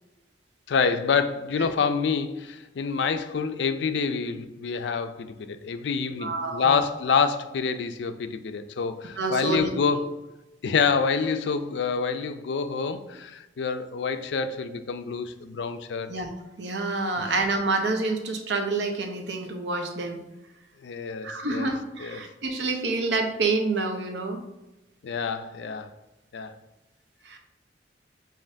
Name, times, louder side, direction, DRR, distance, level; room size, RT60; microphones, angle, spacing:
voice 1, 0.7-10.3 10.6-16.1 17.2-17.3 20.8-21.7 22.0-22.3 25.0-25.9 26.3-26.6, left 5 dB, 75° left, 10 dB, 0.4 m, -27 dB
voice 2, 6.2-6.8 9.2-9.7 16.1-16.3 16.6-20.2 21.2-24.4 27.2-27.4, right 3 dB, 75° right, 4 dB, 0.7 m, -28 dB
7.4 x 2.5 x 2.6 m, 1.0 s
head